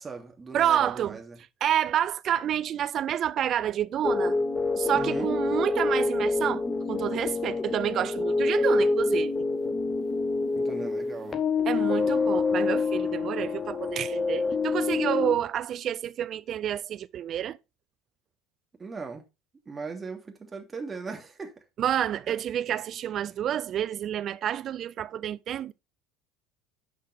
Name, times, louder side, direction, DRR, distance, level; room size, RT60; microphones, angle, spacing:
voice 1, 0.0-1.4 4.9-5.3 10.5-11.4 18.8-19.2 19.7-21.5 22.3-22.4, right 4 dB, 25° right, 2.6 m, -38 dB
voice 2, 0.5-1.2 1.6-4.3 4.8-9.4 11.7-17.6 21.8-25.7, right 10 dB, 45° right, 0.5 m, -29 dB
sound 1, 4.0-15.3, left 4 dB, 25° left, 1.3 m, -27 dB
10.5 x 5.6 x 3.5 m
figure-of-eight pair, 65°, 0 cm